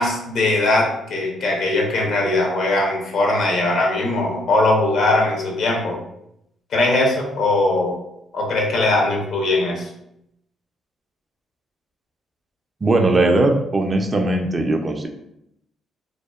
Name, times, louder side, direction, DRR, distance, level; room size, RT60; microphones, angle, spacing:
voice 1, 0.0-6.0 6.7-8.0 8.3-9.9, left 2 dB, 65° left, -1 dB, 0.7 m, -20 dB
voice 2, 12.8-15.1, right 2 dB, 30° right, 4 dB, 0.3 m, -19 dB
2.6 x 2.0 x 2.3 m, 0.79 s
cardioid pair, 90°, 0 cm